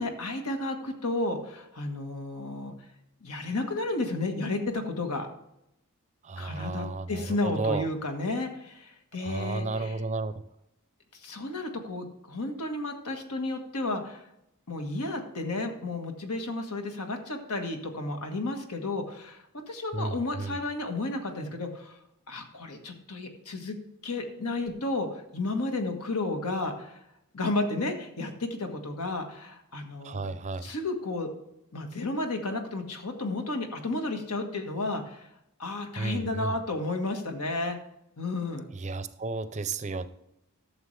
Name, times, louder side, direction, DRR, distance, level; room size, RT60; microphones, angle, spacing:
voice 1, 0.0-2.7 3.2-5.3 6.4-9.9 11.1-14.2 14.7-22.0 22.3-23.7 24.0-27.0 27.3-30.3 30.6-31.3 31.7-35.3 35.6-37.8 38.2-38.7, left 2 dB, 90° left, 4 dB, 1.5 m, -32 dB
voice 2, 6.2-7.9 9.2-10.3 19.9-20.6 30.0-30.7 36.0-36.6 38.7-40.1, right 3 dB, 30° right, 13 dB, 0.5 m, -33 dB
13.0 x 6.9 x 3.3 m, 0.83 s
head